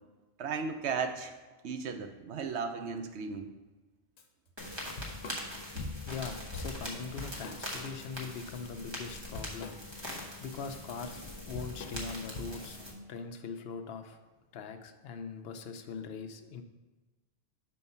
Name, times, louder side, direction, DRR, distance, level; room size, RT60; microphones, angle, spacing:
voice 1, 0.4-1.3 1.6-3.5, right 5 dB, 90° right, 7 dB, 1.0 m, -35 dB
Drum kit / Drum, 4.2-4.3 4.6-5.9 6.2-6.4 6.8-8.1 8.4-12.8, left 2 dB, 90° left, 1.0 m, -45 dB
sound 1, 4.6-12.9, left 1 dB, 25° right, 1.3 m, -42 dB
voice 2, 6.0-9.8 10.0-12.8 13.1-14.2 14.5-16.6, left 5 dB, 70° left, 7 dB, 0.8 m, -41 dB
5.5 x 4.6 x 5.4 m, 1.2 s
omnidirectional pair, 1.1 m